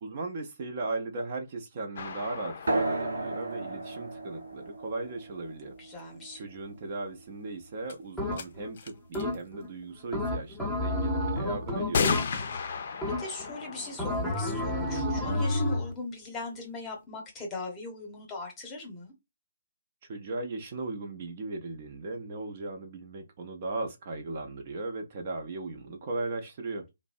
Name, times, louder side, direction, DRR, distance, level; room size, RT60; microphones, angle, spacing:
voice 1, 0.0-5.8 6.3-12.1 20.0-26.9, right 2 dB, 40° right, 0.5 m, -37 dB
sound 1, 2.0-4.7 7.3-7.4 7.9-8.0 8.3-8.5 8.8-9.4 10.6-10.7 11.9-15.5, left 5 dB, 50° left, 0.5 m, -35 dB
sound 2, 2.7-7.7, right 2 dB, 75° right, 0.8 m, -35 dB
voice 2, 5.8-6.4 13.2-19.1, left 2 dB, 15° left, 0.9 m, -39 dB
sound 3, 8.2-8.7 9.1-9.7 10.1-12.6 13.0-13.5 14.0-15.9, left 1 dB, ahead, 0.6 m, -30 dB
2.6 x 2.1 x 2.4 m
figure-of-eight pair, 140°, 0 cm